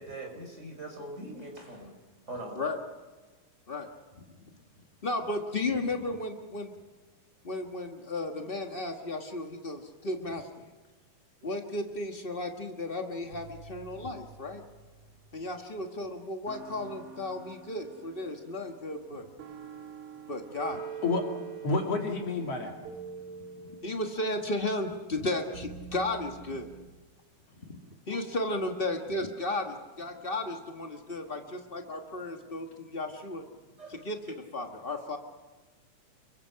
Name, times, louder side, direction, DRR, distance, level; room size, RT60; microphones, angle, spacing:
voice 1, 0.0-1.9 2.3-2.6 33.8-34.1, right 1 dB, 20° right, 2 dB, 5.7 m, -42 dB
voice 2, 5.0-6.7 7.4-10.5 11.4-14.6 15.3-19.3 20.3-20.8 23.8-26.7 27.7-27.8 28.1-33.4 33.9-35.2, left 2 dB, 80° left, 3 dB, 0.5 m, -34 dB
sound 1, 11.4-12.6 13.3-15.9 16.5-26.9, right 6 dB, 65° right, 3.7 m, -47 dB
voice 3, 21.6-22.8 28.1-28.2, left 3 dB, 50° left, 2 dB, 3.3 m, -29 dB
30.0 x 23.0 x 5.7 m, 1.3 s
omnidirectional pair, 3.8 m